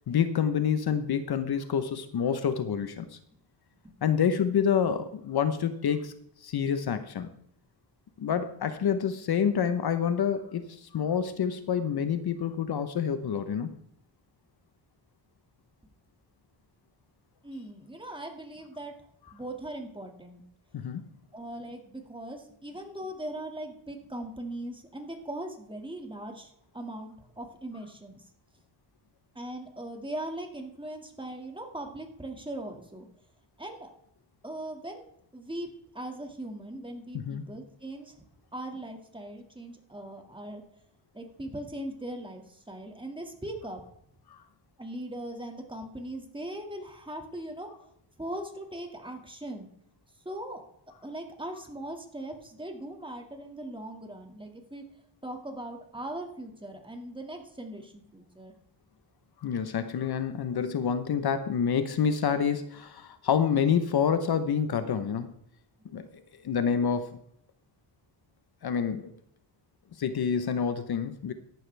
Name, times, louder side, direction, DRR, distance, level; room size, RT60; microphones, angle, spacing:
voice 1, 0.1-3.1 4.0-6.1 6.4-7.3 8.2-13.8 20.7-21.1 37.1-37.4 44.3-44.4 59.4-65.3 65.9-67.1 68.6-69.1 70.0-71.3, left 7 dB, 60° left, 10 dB, 1.0 m, -28 dB
voice 2, 17.4-18.9 19.3-20.4 21.3-28.2 29.4-33.1 33.6-33.9 34.4-35.1 35.3-38.2 38.5-40.6 41.1-43.8 44.8-47.9 48.2-49.7 50.3-50.6 51.0-54.8 55.2-58.5, right 1 dB, 10° right, 3 dB, 2.1 m, -40 dB
14.0 x 11.0 x 3.4 m, 0.73 s
cardioid pair, 100°, 44 cm